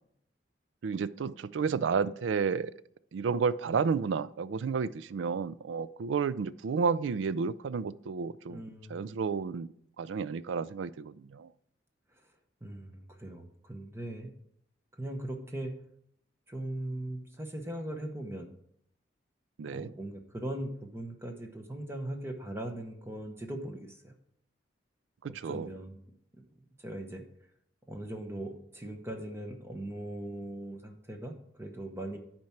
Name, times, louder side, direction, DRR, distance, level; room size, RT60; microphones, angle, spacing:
voice 1, 0.8-2.7 3.1-8.6 8.9-9.7 10.0-11.5 19.6-19.9 25.2-25.7, right 5 dB, 85° right, 16 dB, 0.4 m, -31 dB
voice 2, 8.5-9.1 12.6-14.3 15.0-15.8 16.5-18.5 19.7-24.1 25.2-26.0 26.3-26.4 26.8-27.3 27.9-32.2, right 1 dB, 15° right, 3 dB, 0.9 m, -39 dB
10.5 x 4.4 x 5.8 m, 0.71 s
head